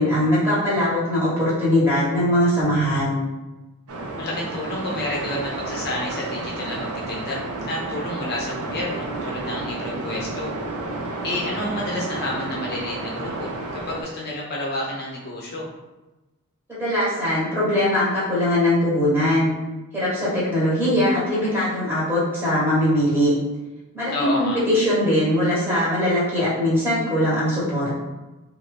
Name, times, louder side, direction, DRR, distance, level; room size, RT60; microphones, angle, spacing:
voice 1, 0.0-3.2 16.7-19.5 19.9-23.3 23.9-28.0, left 1 dB, 10° right, -9 dB, 1.1 m, -21 dB
sound 1, 3.9-14.0, right 2 dB, 75° right, 0.5 m, -31 dB
voice 2, 4.2-10.5 11.2-15.7 24.1-24.6, left 1 dB, 45° left, -3 dB, 0.5 m, -30 dB
2.6 x 2.4 x 3.2 m, 1.1 s
head